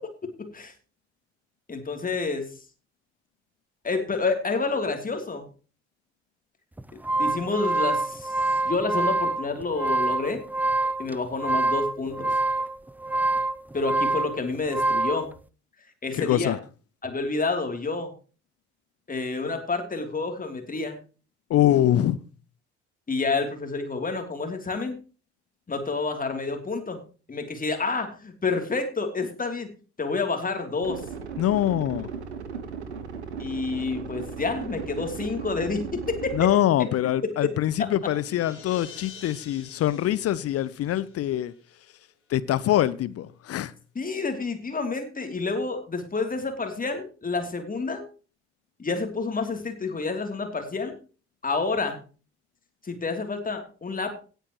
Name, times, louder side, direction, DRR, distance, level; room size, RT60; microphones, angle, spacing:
voice 1, 0.4-0.7 1.7-2.5 3.8-5.4 7.2-8.3 8.6-10.4 11.0-12.3 13.7-15.3 16.0-16.6 17.0-18.1 19.1-21.0 23.1-25.0 25.7-27.0 27.3-29.7 30.0-31.0 33.4-36.3 43.9-48.0 48.8-51.0 51.4-52.0 52.8-54.2, left 3 dB, 25° left, 3.1 m, -29 dB
sound 1, 6.8-15.2, right 2 dB, 5° right, 0.6 m, -26 dB
voice 2, 16.2-16.6 21.5-22.2 31.4-32.1 36.3-41.5 42.3-43.7, left 12 dB, 45° left, 0.8 m, -24 dB
sound 2, 30.8-36.5, right 6 dB, 80° right, 1.4 m, -36 dB
sound 3, 37.4-41.8, left 6 dB, 75° left, 3.2 m, -48 dB
17.5 x 9.0 x 3.1 m
figure-of-eight pair, 50°, 33 cm